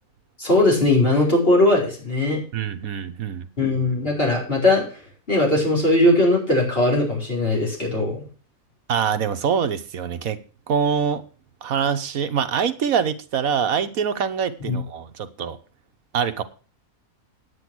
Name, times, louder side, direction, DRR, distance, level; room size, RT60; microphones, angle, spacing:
voice 1, 0.4-2.4 3.6-4.9 5.3-8.2 14.6-14.8, left 2 dB, 40° left, -3 dB, 4.9 m, -19 dB
voice 2, 2.5-3.5 8.9-10.4 10.7-11.2 11.6-15.6 16.1-16.4, right 7 dB, 70° right, 9 dB, 1.4 m, -24 dB
9.6 x 9.3 x 6.1 m, 0.37 s
omnidirectional pair, 1.5 m